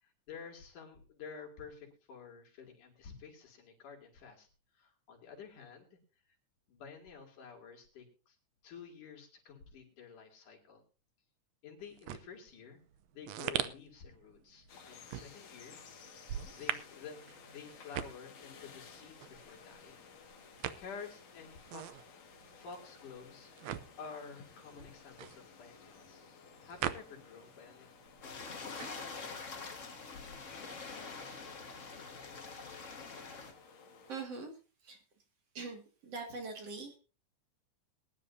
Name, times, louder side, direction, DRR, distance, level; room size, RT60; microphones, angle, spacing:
voice 1, 0.0-4.5 4.7-6.0 6.7-8.4 8.6-10.8 11.6-12.8 13.1-15.8 16.5-17.2 17.5-20.0 20.8-21.8 22.3-23.5 24.0-26.2 26.6-29.8, left 6 dB, 75° left, 1 dB, 4.3 m, -51 dB
sound 1, 11.8-27.6 27.8-29.4, right 11 dB, 70° right, 1.7 m, -42 dB
sound 2, 14.7-34.2, left 6 dB, 55° left, 2.8 m, -56 dB
sound 3, 28.2-33.5, left 4 dB, 40° left, 1.2 m, -45 dB
voice 2, 34.1-34.5 34.8-35.0 35.5-37.0, right 4 dB, 50° right, 4 dB, 3.0 m, -42 dB
21.5 x 11.0 x 2.7 m, 0.33 s
omnidirectional pair, 3.7 m